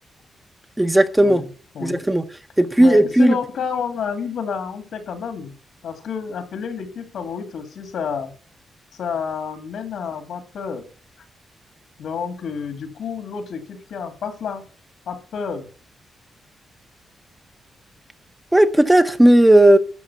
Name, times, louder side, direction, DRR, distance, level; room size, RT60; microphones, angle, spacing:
voice 1, 0.8-1.4 1.8-2.2 2.6-3.4 18.5-19.8, right 1 dB, 5° right, 0.7 m, -14 dB
voice 2, 2.8-5.5 5.8-8.3 8.9-10.9 12.0-14.6 15.1-15.7, left 6 dB, 75° left, 2.2 m, -29 dB
12.5 x 5.1 x 8.2 m
wide cardioid pair, 155°, 0 cm